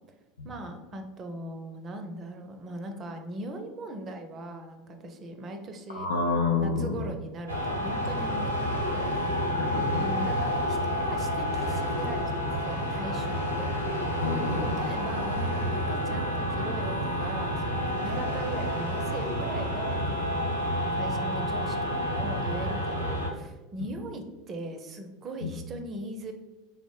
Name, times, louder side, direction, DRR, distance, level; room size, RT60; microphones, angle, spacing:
voice 1, 0.4-6.1 6.6-9.1 10.0-13.7 14.6-20.5 20.9-26.3, right 1 dB, 35° right, 5 dB, 0.5 m, -39 dB
voice 2, 5.9-7.0 9.5-10.3 14.2-14.9 25.4-25.5, left 4 dB, 85° left, -1 dB, 0.4 m, -29 dB
sound 1, 7.5-23.3, equal, 90° right, 0.6 m, -29 dB
3.4 x 2.0 x 3.6 m, 1.1 s
hypercardioid pair, 80°, 0 cm